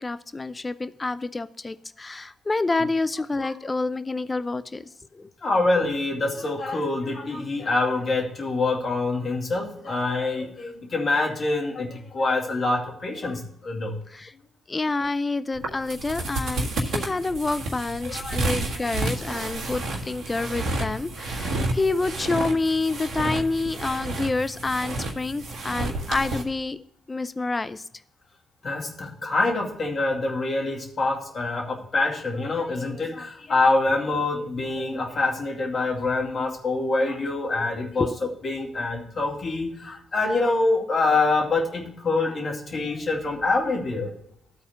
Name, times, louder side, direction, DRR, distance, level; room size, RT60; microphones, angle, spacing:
voice 1, 0.0-5.3 14.1-14.3 14.7-26.8 27.1-27.8 38.0-38.1, left 3 dB, 30° left, 12 dB, 0.6 m, -28 dB
voice 2, 5.4-13.9 18.1-18.5 28.6-38.1 38.4-44.1, left 3 dB, 50° left, 1 dB, 2.3 m, -25 dB
sound 1, 15.5-26.4, right 2 dB, 60° right, 1.7 m, -30 dB
12.0 x 4.3 x 6.4 m, 0.72 s
hypercardioid pair, 45°, 0 cm